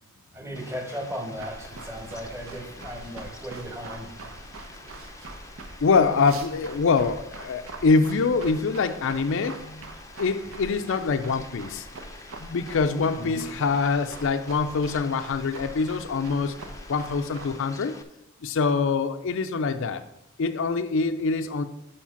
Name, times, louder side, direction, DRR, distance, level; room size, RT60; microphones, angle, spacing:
voice 1, 0.3-4.1 13.2-13.5, equal, 15° right, 3 dB, 1.1 m, -36 dB
Fowl, 0.6-18.0, left 3 dB, 15° left, 0.5 m, -48 dB
sound 1, 1.4-17.5, right 2 dB, 70° right, 0.9 m, -43 dB
voice 2, 5.8-9.9 10.2-11.9 12.4-16.6 16.9-18.0 18.4-20.0 20.4-21.6, left 4 dB, 65° left, 9 dB, 0.5 m, -24 dB
7.2 x 4.9 x 5.7 m, 0.86 s
head